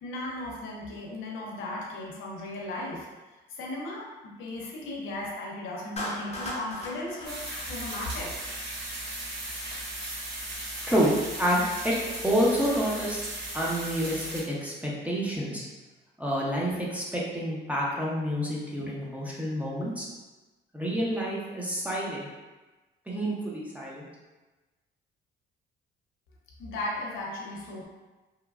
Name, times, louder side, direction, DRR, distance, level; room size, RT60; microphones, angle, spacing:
voice 1, 0.0-3.1 3.5-8.3 26.6-27.8, left 2 dB, 80° left, -3 dB, 0.7 m, -36 dB
Clapping, 6.0-8.4, left 1 dB, 35° left, 0.7 m, -37 dB
sound 1, 7.2-14.4, right 1 dB, 55° right, 1.3 m, -37 dB
voice 2, 10.9-11.9 12.2-13.2 13.5-15.6 16.2-20.1 20.7-22.3 23.1-24.0, equal, 5° right, -5 dB, 0.6 m, -28 dB
2.9 x 2.2 x 2.4 m, 1.2 s
cardioid pair, 90°, 20 cm